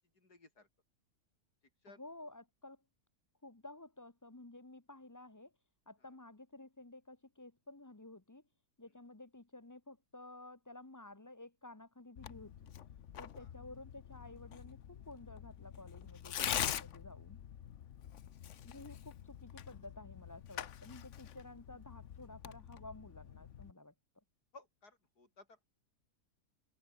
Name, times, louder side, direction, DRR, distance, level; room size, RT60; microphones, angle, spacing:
voice 1, 0.1-0.7 1.8-2.0 6.0-6.1 8.8-9.0 13.3-13.5 18.7-18.9 24.5-25.6, left 3 dB, 85° left, 5.3 m, -60 dB
voice 2, 2.0-2.8 3.4-5.5 5.9-8.4 8.8-12.7 13.2-17.4 18.6-23.9, left 2 dB, 15° left, 1.1 m, -53 dB
Tearing, 12.2-23.7, left 10 dB, 55° left, 1.1 m, -44 dB
omnidirectional pair, 1.6 m